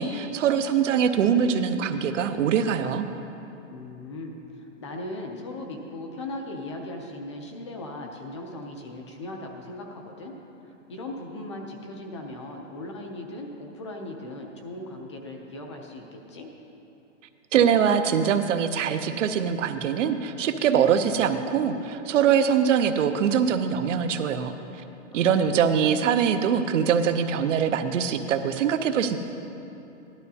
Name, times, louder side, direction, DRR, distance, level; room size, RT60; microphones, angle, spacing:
voice 1, 0.0-3.1 17.5-24.8 25.1-29.2, right 7 dB, 80° right, 9 dB, 0.7 m, -23 dB
voice 2, 3.7-10.4 10.6-16.5 25.1-25.8, left 2 dB, 25° left, 2 dB, 0.5 m, -38 dB
13.5 x 11.5 x 2.8 m, 2.9 s
supercardioid pair, 175°, 37 cm